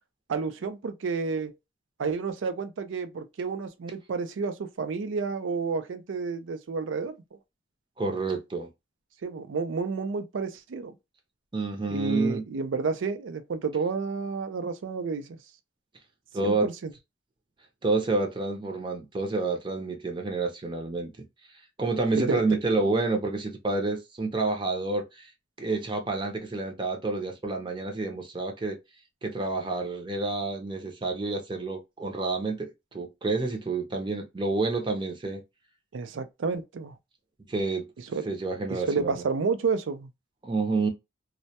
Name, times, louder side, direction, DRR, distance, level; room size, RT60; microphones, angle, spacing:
voice 1, 0.3-1.5 2.0-7.1 9.2-10.9 11.9-15.4 16.4-16.9 22.2-22.4 35.9-36.9 38.1-38.3 38.9-40.1, right 4 dB, 90° right, 0.4 m, -30 dB
voice 2, 8.0-8.7 11.5-12.4 16.3-16.7 17.8-21.1 21.8-25.3 25.6-28.8 29.2-35.4 37.5-37.9 38.3-39.2 40.4-40.9, right 3 dB, 25° right, 0.5 m, -29 dB
2.1 x 2.1 x 2.7 m
head